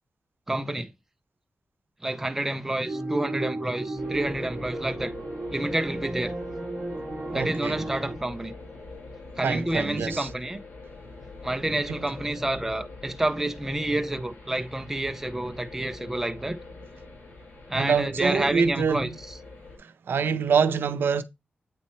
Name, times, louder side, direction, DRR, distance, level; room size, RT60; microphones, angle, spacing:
voice 1, 0.5-0.9 2.0-5.1 5.5-6.3 7.3-8.6 9.4-10.6 11.4-16.6 17.7-19.1, right 1 dB, 10° right, 0.5 m, -29 dB
sound 1, 2.8-8.2, right 2 dB, 25° right, 1.3 m, -34 dB
sound 2, 4.0-19.8, left 3 dB, 55° left, 3.3 m, -44 dB
voice 2, 7.3-7.9 9.4-10.3 11.9-12.0 17.7-19.2 19.8-21.2, right 6 dB, 90° right, 0.5 m, -26 dB
8.6 x 2.9 x 4.2 m
wide cardioid pair, 155°, 4 cm